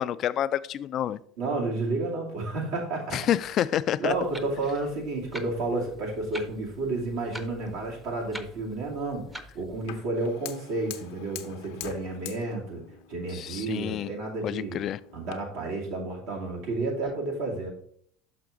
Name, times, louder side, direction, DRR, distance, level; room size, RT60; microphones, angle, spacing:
voice 1, 0.0-1.2 3.1-4.1 13.3-14.1 14.4-15.0, left 11 dB, 50° left, 16 dB, 0.3 m, -28 dB
voice 2, 1.4-3.2 4.0-9.2 9.5-12.8 13.1-14.8 15.1-17.7, right 2 dB, 75° right, -2 dB, 2.4 m, -31 dB
Clock, 4.1-10.0, equal, 10° right, 0.7 m, -46 dB
Fire, 9.9-15.3, left 11 dB, 80° left, 0.7 m, -45 dB
5.9 x 5.8 x 3.8 m, 0.63 s
supercardioid pair, 100°, 0 cm